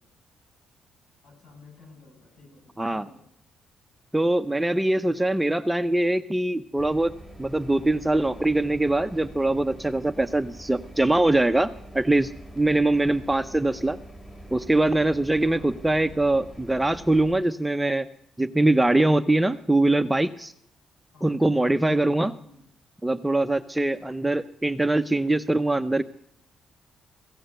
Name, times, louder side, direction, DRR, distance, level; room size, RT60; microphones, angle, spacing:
voice 1, 1.2-3.3 15.4-15.8 21.1-21.3 21.8-22.7 23.8-24.2, left 2 dB, 55° left, 1 dB, 7.2 m, -49 dB
voice 2, 4.1-7.1 7.4-14.0 14.5-18.1 18.4-20.5 21.2-22.3 23.0-26.0, right 2 dB, 10° right, 11 dB, 0.6 m, -23 dB
sound 1, 6.8-17.4, right 1 dB, 15° left, 2.8 m, -44 dB
15.5 x 8.6 x 7.9 m, 0.73 s
cardioid pair, 90°, 0 cm